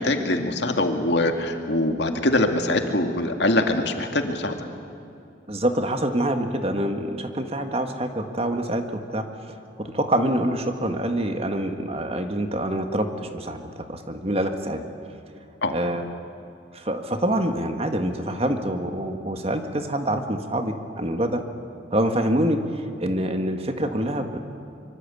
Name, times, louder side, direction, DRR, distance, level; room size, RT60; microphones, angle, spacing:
voice 1, 0.0-4.6 15.6-15.8, left 1 dB, 65° left, 5 dB, 2.3 m, -23 dB
voice 2, 5.5-9.3 9.8-14.9 15.7-16.1 16.7-21.4 21.9-24.4, right 1 dB, 30° right, 6 dB, 1.8 m, -26 dB
25.0 x 24.5 x 8.5 m, 2.6 s
head